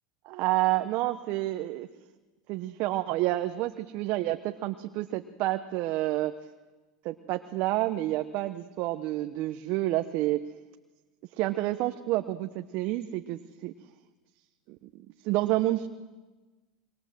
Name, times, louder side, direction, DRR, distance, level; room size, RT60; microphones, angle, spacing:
voice 1, 0.2-1.9 2.5-6.3 7.0-10.4 11.4-13.7 14.7-15.9, right 16 dB, 55° right, 8 dB, 1.1 m, -29 dB
26.5 x 23.0 x 7.8 m, 1.2 s
hypercardioid pair, 105°, 4 cm